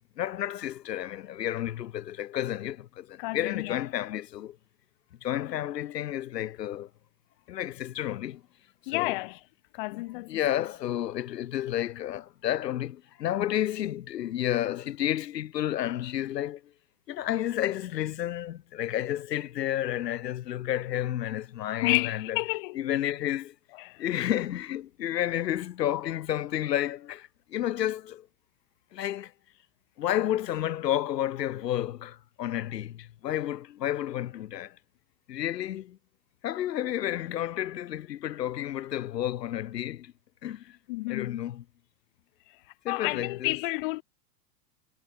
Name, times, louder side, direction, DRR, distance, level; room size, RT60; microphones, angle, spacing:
voice 1, 0.2-4.6 5.2-6.9 7.5-8.4 8.9-9.2 9.9-16.6 17.1-22.4 22.7-23.5 24.0-28.3 28.9-29.3 30.0-34.8 35.3-36.0 36.4-40.1 40.4-40.8 41.1-41.6 42.8-43.6, left 12 dB, 75° left, 2.5 m, -31 dB
voice 2, 3.2-3.8 8.9-9.4 9.7-10.4 21.8-22.8 23.8-24.0 40.9-41.4 42.9-44.0, left 24 dB, 30° left, 1.8 m, -30 dB
supercardioid pair, 175°, 49 cm